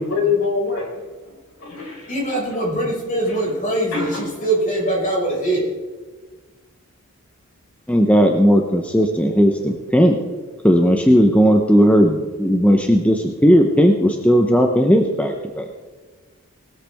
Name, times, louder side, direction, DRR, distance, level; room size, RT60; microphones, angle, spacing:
voice 1, 0.0-1.3 1.6-2.1 3.2-3.5 3.9-4.4, left 5 dB, 65° left, -1 dB, 4.9 m, -25 dB
voice 2, 2.1-5.6, right 1 dB, 35° left, -3 dB, 5.3 m, -22 dB
voice 3, 7.9-10.2 10.6-15.7, equal, 5° left, 3 dB, 0.8 m, -16 dB
19.5 x 13.0 x 3.5 m, 1.4 s
head